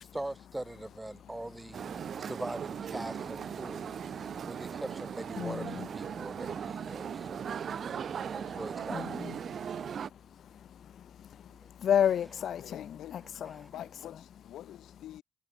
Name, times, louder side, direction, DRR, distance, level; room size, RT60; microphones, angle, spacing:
voice 1, 0.0-3.9 4.5-7.5 8.3-9.1 11.5-11.6 13.6-13.7, right 1 dB, 10° right, 0.6 m, -42 dB
sound 1, 1.3-12.0, right 4 dB, 30° right, 6.5 m, -66 dB
sound 2, 1.7-10.1, right 7 dB, 55° right, 0.6 m, -38 dB
voice 2, 3.9-4.4 5.4-5.9 7.0-8.6 8.9-13.7, left 9 dB, 65° left, 0.3 m, -35 dB
voice 3, 12.6-13.5 13.7-15.2, left 13 dB, 80° left, 4.8 m, -47 dB
cardioid pair, 90°, 0 cm